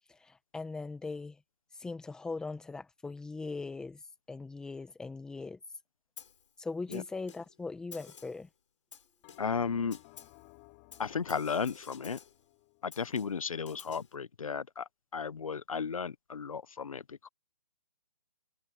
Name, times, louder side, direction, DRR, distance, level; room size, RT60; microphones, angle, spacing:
voice 1, 0.1-1.4 1.8-4.0 4.3-5.6 6.6-8.5, left 3 dB, 5° left, 1.7 m, -40 dB
Snare drum, 6.2-6.5 6.9-7.6 7.9-8.5 8.9-9.6 9.9-10.4 10.9-12.4 12.9-14.1, left 6 dB, 65° left, 6.8 m, -53 dB
Bell, 9.2-13.8, left 27 dB, 25° left, 3.1 m, -60 dB
voice 2, 9.4-10.0 11.0-12.2 12.8-14.8 15.1-17.3, left 6 dB, 85° left, 1.2 m, -34 dB
hypercardioid pair, 160°, 17 cm